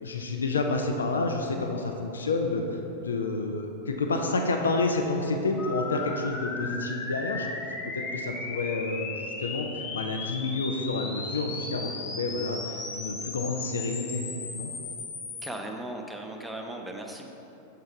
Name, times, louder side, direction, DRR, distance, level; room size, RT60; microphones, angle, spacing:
voice 1, 0.0-14.7, left 3 dB, 70° left, 3 dB, 0.5 m, -29 dB
sound 1, 5.6-15.5, left 3 dB, 35° left, 0.9 m, -36 dB
voice 2, 15.4-17.3, right 1 dB, 5° right, 1 dB, 0.6 m, -37 dB
6.7 x 6.3 x 3.5 m, 2.9 s
figure-of-eight pair, 90°, 0 cm